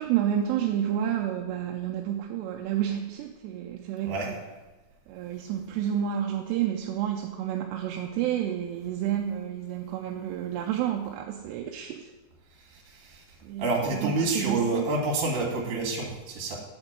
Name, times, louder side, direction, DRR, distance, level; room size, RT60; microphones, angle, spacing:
voice 1, 0.0-4.4 5.1-12.1 13.4-14.9, right 10 dB, 85° right, 2 dB, 2.5 m, -30 dB
voice 2, 4.0-4.4 12.5-13.2 13.6-16.6, right 3 dB, 55° right, -1 dB, 2.8 m, -28 dB
8.0 x 4.4 x 7.2 m, 1.2 s
omnidirectional pair, 5.1 m